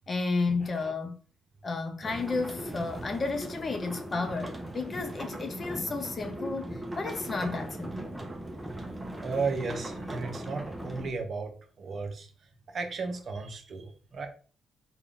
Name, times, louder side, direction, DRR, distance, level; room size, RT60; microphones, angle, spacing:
voice 1, 0.1-1.1 1.6-8.2, left 3 dB, 35° left, 0.6 m, -32 dB
sound 1, 2.0-11.1, right 1 dB, 10° right, 0.6 m, -39 dB
voice 2, 9.2-12.3 12.7-14.3, right 4 dB, 50° right, 0.7 m, -34 dB
3.7 x 2.3 x 3.5 m
cardioid pair, 90°, 0 cm